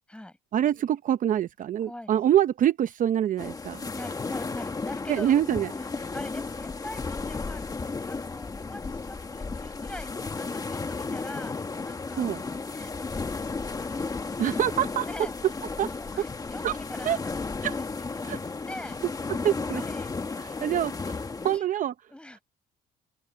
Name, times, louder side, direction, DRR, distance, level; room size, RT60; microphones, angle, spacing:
voice 1, 0.5-3.8 5.1-5.7 12.1-12.4 14.4-15.1 15.8-15.9 16.6-16.8 17.0-17.2 17.6-17.8 18.2-18.4 19.4-19.8 20.4-21.9, right 11 dB, 50° right, 0.8 m, -25 dB
voice 2, 1.8-2.2 3.9-5.4 5.7-7.7 8.0-11.5 11.8-12.3 12.7-14.4 15.0-15.4 15.9-17.2 18.1-18.3 18.6-19.0 19.7-20.7 21.2-21.7 22.1-22.4, left 1 dB, 5° left, 7.6 m, -44 dB
sound 1, 3.4-21.6, left 4 dB, 20° left, 1.7 m, -34 dB
cardioid pair, 110°, 17 cm